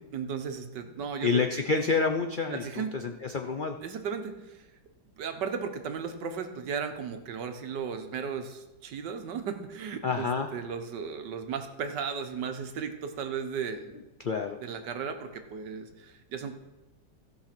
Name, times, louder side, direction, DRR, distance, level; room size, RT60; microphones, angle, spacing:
voice 1, 0.1-1.4 2.5-2.9 3.8-4.7 5.2-14.0 14.6-16.5, right 6 dB, 80° right, 7 dB, 1.6 m, -35 dB
voice 2, 1.2-3.8 10.0-10.5 14.2-14.6, left 4 dB, 75° left, 4 dB, 0.4 m, -28 dB
16.0 x 5.5 x 5.9 m, 1.0 s
omnidirectional pair, 1.8 m